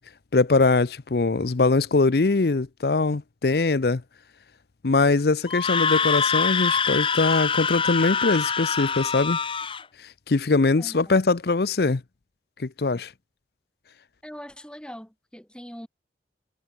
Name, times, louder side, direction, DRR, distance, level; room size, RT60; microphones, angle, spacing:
voice 1, 0.3-4.0 4.8-9.4 10.3-12.0 12.6-13.1, left 3 dB, 60° left, 0.6 m, -22 dB
Screaming, 5.5-9.8, left 6 dB, 30° left, 1.5 m, -24 dB
voice 2, 10.8-11.1 14.2-15.9, equal, 5° left, 7.0 m, -41 dB
head